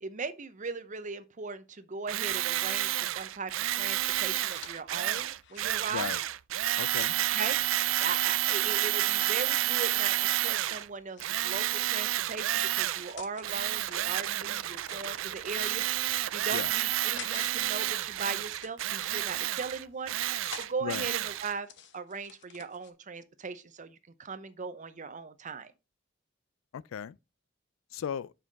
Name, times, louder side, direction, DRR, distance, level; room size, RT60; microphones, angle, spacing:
voice 1, 0.0-3.5 3.8-6.1 7.3-7.6 8.0-20.1 20.6-25.7, right 4 dB, 40° right, 0.7 m, -39 dB
Tools, 2.1-10.9 11.2-13.1 13.4-21.5, right 14 dB, 70° right, 0.4 m, -30 dB
sound 1, 3.6-7.7 8.8-9.9 10.7-12.0 12.7-13.5 13.9-15.4 16.0-17.5 17.8-19.4 19.9-20.7 21.2-22.9, left 7 dB, 60° left, 1.0 m, -50 dB
voice 2, 5.9-6.2 6.8-7.2 16.5-16.7 20.8-21.1 26.7-27.2 27.9-28.3, left 8 dB, 85° left, 0.3 m, -36 dB
7.4 x 5.6 x 4.0 m
head